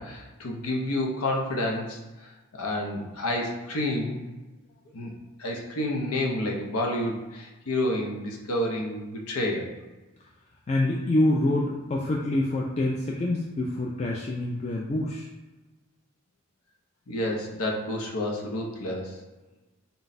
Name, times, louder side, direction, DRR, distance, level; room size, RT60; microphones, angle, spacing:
voice 1, 0.0-2.0 2.5-4.2 4.9-5.1 5.4-9.7 17.1-19.1, left 1 dB, 80° left, 0 dB, 0.8 m, -29 dB
voice 2, 10.7-15.3, left 1 dB, 30° left, -2 dB, 0.3 m, -26 dB
3.9 x 2.3 x 4.0 m, 1.1 s
head